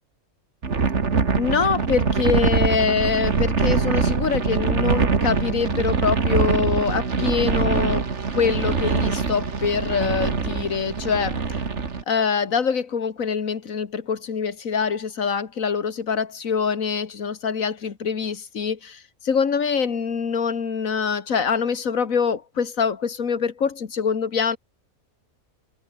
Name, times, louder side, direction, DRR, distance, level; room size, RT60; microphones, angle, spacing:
sound 1, 0.6-12.0, right 5 dB, 55° right, 2.2 m, -23 dB
voice 1, 1.4-8.1 8.3-11.4 12.1-24.6, left 6 dB, 70° left, 2.0 m, -24 dB
omnidirectional pair, 1.5 m